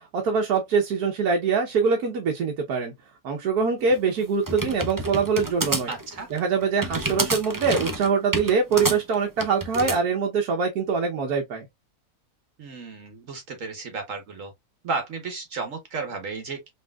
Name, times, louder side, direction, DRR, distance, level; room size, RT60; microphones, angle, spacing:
voice 1, 0.0-2.9 3.2-5.9 6.3-11.7, right 5 dB, 90° right, 1.4 m, -24 dB
sound 1, 3.9-10.0, right 2 dB, 30° right, 0.3 m, -29 dB
voice 2, 5.9-6.3 12.6-14.5 14.8-16.7, right 4 dB, 60° right, 1.2 m, -33 dB
5.4 x 3.1 x 2.2 m
omnidirectional pair, 1.6 m